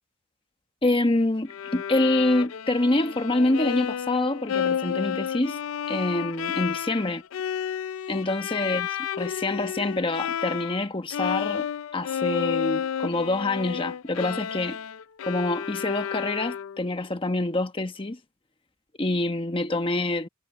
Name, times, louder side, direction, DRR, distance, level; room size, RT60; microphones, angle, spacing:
voice 1, 0.8-5.6 5.9-7.2 8.1-8.9 9.1-11.7 11.9-14.8 15.2-18.2 19.0-20.3, left 2 dB, 25° left, 1.2 m, -26 dB
Bowed string instrument, 1.5-10.9 11.1-16.9, left 8 dB, 80° left, 0.4 m, -31 dB
head